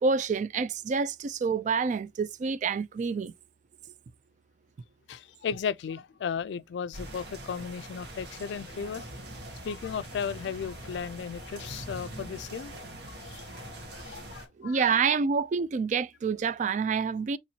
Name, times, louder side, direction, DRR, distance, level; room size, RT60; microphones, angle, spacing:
voice 1, 0.0-3.3 14.6-17.4, right 5 dB, 45° right, 0.3 m, -27 dB
voice 2, 5.1-9.1 9.6-12.7 13.1-13.7 13.9-14.9, left 7 dB, 75° left, 0.3 m, -35 dB
sound 1, 6.9-14.5, right 1 dB, 65° right, 1.3 m, -43 dB
4.2 x 3.0 x 2.7 m
head